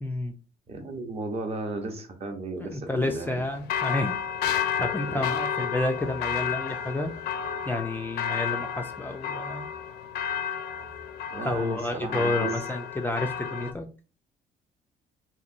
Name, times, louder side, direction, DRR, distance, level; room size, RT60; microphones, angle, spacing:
voice 1, 0.0-0.3 2.6-4.2 4.8-7.1 7.7-9.7 11.4-13.9, left 2 dB, 10° left, 0.3 m, -30 dB
voice 2, 0.7-3.4 4.6-4.7 5.0-5.2 11.3-12.7, right 3 dB, 35° right, 0.7 m, -35 dB
sound 1, 3.0-13.7, left 8 dB, 70° left, 0.5 m, -32 dB
2.9 x 2.7 x 2.5 m
cardioid pair, 110°, 17 cm